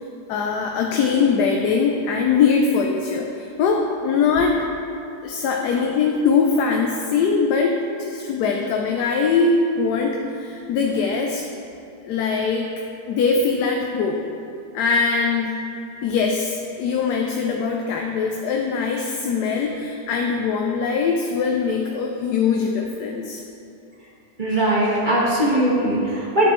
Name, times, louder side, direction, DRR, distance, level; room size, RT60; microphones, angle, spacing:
voice 1, 0.3-4.6 5.2-11.4 12.0-12.7 13.1-14.3 14.7-15.6 16.0-23.4, left 5 dB, 85° left, 1 dB, 1.2 m, -22 dB
voice 2, 24.4-26.5, right 1 dB, 30° right, -6 dB, 1.3 m, -20 dB
11.0 x 6.8 x 3.0 m, 2.7 s
omnidirectional pair, 1.7 m